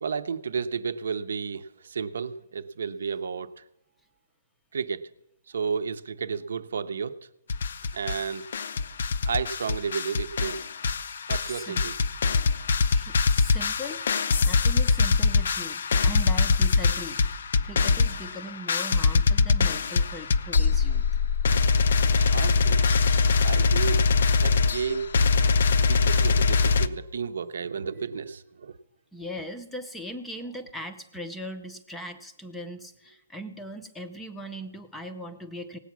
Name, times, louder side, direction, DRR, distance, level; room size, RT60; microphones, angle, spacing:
voice 1, 0.0-3.6 4.7-5.1 5.5-7.2 7.9-8.5 9.2-10.7 11.3-11.9 22.1-22.9 23.4-24.0 24.4-25.1 25.9-28.7, right 6 dB, 65° right, 12 dB, 0.7 m, -32 dB
sound 1, 7.5-8.3 8.5-26.9, left 4 dB, 55° left, 0.6 m, -23 dB
voice 2, 11.5-11.9 12.9-17.2 17.6-21.0 29.1-35.8, equal, 5° left, 8 dB, 0.5 m, -39 dB
17.5 x 8.3 x 6.0 m, 0.85 s
hypercardioid pair, 170°, 0 cm